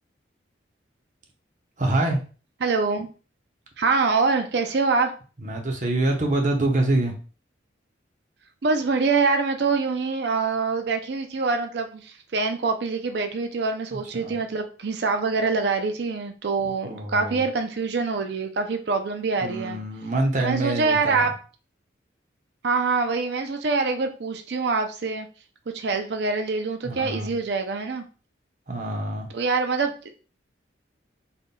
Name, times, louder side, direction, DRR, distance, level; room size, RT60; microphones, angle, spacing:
voice 1, 1.8-2.2 5.4-7.1 13.9-14.4 16.8-17.4 19.4-21.3 26.8-27.3 28.7-29.3, right 2 dB, 40° right, 2 dB, 0.8 m, -25 dB
voice 2, 2.6-3.1 3.8-5.1 8.6-19.8 20.4-21.3 22.6-25.3 25.7-28.0 29.3-29.9, right 4 dB, 60° right, 6 dB, 0.5 m, -25 dB
3.9 x 3.6 x 2.2 m, 0.36 s
head